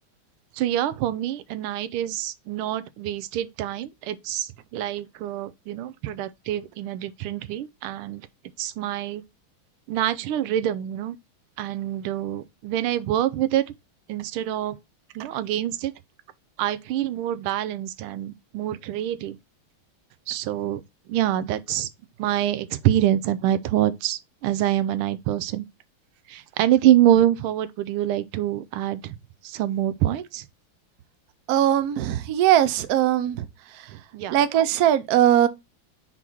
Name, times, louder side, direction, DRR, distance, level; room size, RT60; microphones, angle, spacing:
voice 1, 0.5-8.3 8.6-9.2 9.9-11.2 11.6-13.7 14.1-14.8 15.1-15.9 16.6-19.4 20.3-20.8 21.1-21.9 22.2-25.7 26.3-29.1 29.4-30.4 33.9-34.4, right 12 dB, 85° right, 1.5 m, -25 dB
voice 2, 31.5-33.5 34.3-35.5, right 11 dB, 70° right, 0.9 m, -20 dB
5.8 x 3.9 x 4.5 m
omnidirectional pair, 2.3 m